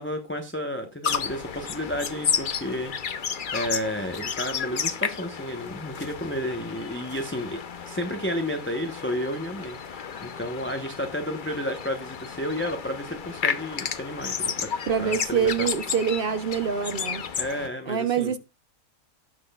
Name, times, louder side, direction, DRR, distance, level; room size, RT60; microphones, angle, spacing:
voice 1, 0.0-14.7 15.0-15.7 17.4-18.3, equal, 10° left, 0.7 m, -32 dB
sound 1, 1.0-17.7, left 7 dB, 45° left, 0.7 m, -32 dB
voice 2, 14.9-17.2 17.9-18.4, right 7 dB, 55° right, 0.7 m, -25 dB
17.5 x 6.1 x 2.3 m
omnidirectional pair, 1.6 m